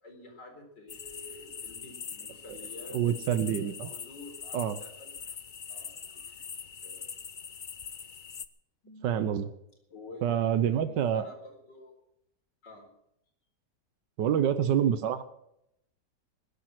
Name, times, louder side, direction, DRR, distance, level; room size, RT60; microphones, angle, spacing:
voice 1, 0.0-5.1 5.7-6.0 6.4-6.5 6.8-7.2 8.8-9.2 9.9-11.9 12.6-12.9, left 2 dB, 90° left, 2 dB, 4.9 m, -49 dB
sound 1, 0.9-8.5, left 7 dB, 45° left, 0.6 m, -43 dB
voice 2, 2.9-3.9 4.5-4.8 9.0-9.5 10.2-11.3 14.2-15.2, right 9 dB, 85° right, 12 dB, 1.6 m, -27 dB
20.0 x 11.0 x 6.1 m, 0.79 s
omnidirectional pair, 1.8 m